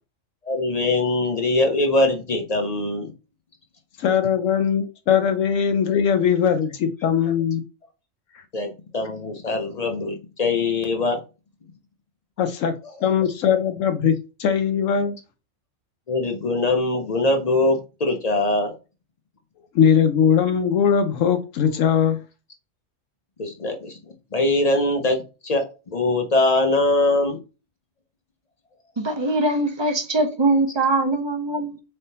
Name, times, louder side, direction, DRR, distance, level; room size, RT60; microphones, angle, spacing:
voice 1, 0.4-3.1 8.5-8.7 8.9-11.2 12.8-13.3 16.1-18.7 23.4-24.0 24.3-27.4, left 2 dB, 50° left, 0.4 m, -22 dB
voice 2, 4.0-7.6 12.4-12.7 13.0-14.1 14.4-15.2 19.7-22.2, left 7 dB, 75° left, 0.9 m, -20 dB
voice 3, 29.0-31.8, right 2 dB, 40° right, 0.3 m, -22 dB
4.3 x 3.4 x 2.7 m
omnidirectional pair, 1.4 m